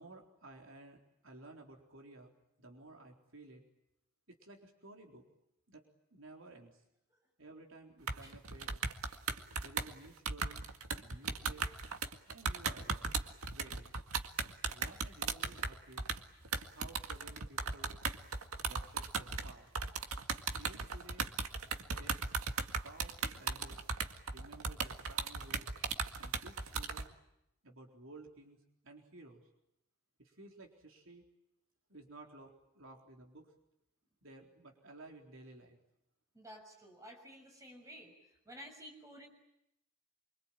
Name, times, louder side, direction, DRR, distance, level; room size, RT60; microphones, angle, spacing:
voice 1, 0.0-2.3 2.6-3.6 4.3-5.3 5.7-5.8 6.1-6.8 7.4-8.7 9.5-10.6 11.0-11.7 12.3-13.1 13.5-13.9 14.7-16.1 16.7-17.9 18.7-19.7 20.6-21.3 21.8-22.2 22.8-23.8 24.3-25.6 26.2-27.1 27.6-28.6 28.8-29.4 30.2-31.3 31.9-33.5 34.2-35.8, right 2 dB, 65° right, 2 dB, 4.1 m, -55 dB
sound 1, 8.1-27.1, right 4 dB, 80° right, 2.0 m, -37 dB
voice 2, 36.3-39.3, equal, 15° right, 3 dB, 6.4 m, -53 dB
26.5 x 25.0 x 9.1 m, 0.81 s
head